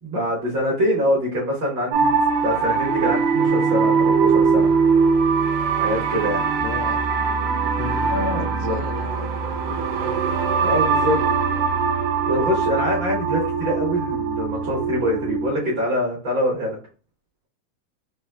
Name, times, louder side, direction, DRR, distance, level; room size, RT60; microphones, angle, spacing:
voice 1, 0.0-2.1 2.4-4.7 5.8-6.4 8.1-8.8 10.6-11.4 12.2-16.8, equal, 55° right, -5 dB, 1.4 m, -24 dB
sound 1, 1.9-15.5, right 5 dB, 75° right, 1.5 m, -21 dB
voice 2, 6.6-7.0 7.8-10.1, left 8 dB, 85° left, 6 dB, 1.9 m, -35 dB
6.4 x 2.2 x 2.2 m, 0.36 s
omnidirectional pair, 3.3 m